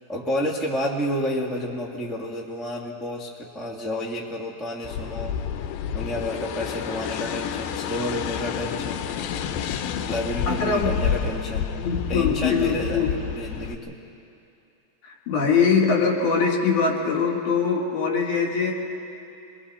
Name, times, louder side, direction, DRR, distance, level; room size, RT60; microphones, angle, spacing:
voice 1, 0.1-5.4 5.9-9.1 10.0-11.8 12.1-13.9, left 1 dB, ahead, -2 dB, 0.5 m, -30 dB
sound 1, 4.8-13.8, left 8 dB, 85° left, 2.5 m, -29 dB
voice 2, 10.5-11.0 11.8-13.1 15.0-18.7, left 5 dB, 65° left, -2 dB, 3.8 m, -22 dB
27.0 x 22.0 x 4.3 m, 2.7 s
omnidirectional pair, 4.1 m